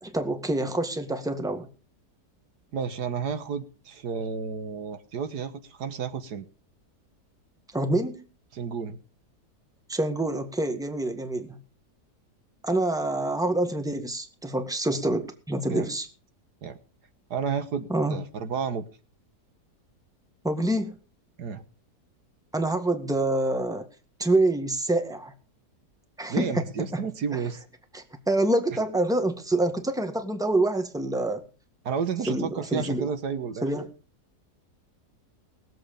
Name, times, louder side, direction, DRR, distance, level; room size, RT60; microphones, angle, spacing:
voice 1, 0.0-1.7 7.7-8.2 9.9-11.6 12.6-16.1 17.9-18.2 20.4-21.0 22.5-23.9 24.2-25.3 26.2-26.6 26.9-27.0 27.3-27.4 27.9-31.4 32.3-33.1 33.6-33.9, right 2 dB, ahead, 7 dB, 1.7 m, -26 dB
voice 2, 2.7-6.5 8.5-9.0 15.7-15.9 16.6-16.8 17.3-18.9 21.4-21.6 26.3-27.6 31.9-33.7, right 6 dB, 75° right, 10 dB, 1.8 m, -31 dB
21.0 x 7.9 x 5.2 m, 0.35 s
omnidirectional pair, 1.8 m